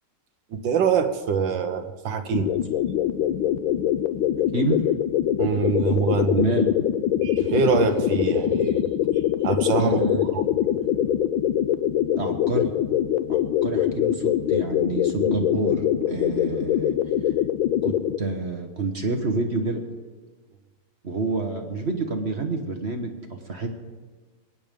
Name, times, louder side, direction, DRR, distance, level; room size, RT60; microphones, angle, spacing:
voice 1, 0.5-2.5 5.4-6.4 7.2-10.0 10.3-10.5, right 6 dB, 65° right, 7 dB, 1.5 m, -24 dB
sound 1, 2.3-18.2, left 11 dB, 75° left, 1.3 m, -23 dB
voice 2, 6.4-6.7 9.8-10.3 12.1-12.7 13.3-16.9 17.8-19.8 21.0-23.8, right 3 dB, 40° right, 4 dB, 1.2 m, -28 dB
22.5 x 9.1 x 5.2 m, 1.3 s
omnidirectional pair, 2.4 m